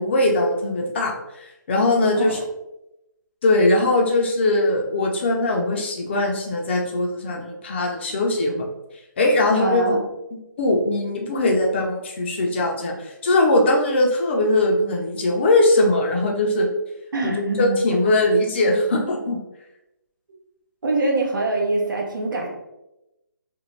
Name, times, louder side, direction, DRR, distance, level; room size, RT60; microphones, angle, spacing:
voice 1, 0.0-2.4 3.4-8.5 9.2-9.8 10.6-16.7 17.2-19.4, left 2 dB, 35° left, 0 dB, 0.5 m, -20 dB
voice 2, 9.5-10.0 17.1-17.8 20.8-22.5, right 2 dB, 75° right, -1 dB, 0.8 m, -24 dB
2.6 x 2.2 x 3.1 m, 0.93 s
hypercardioid pair, 165°, 11 cm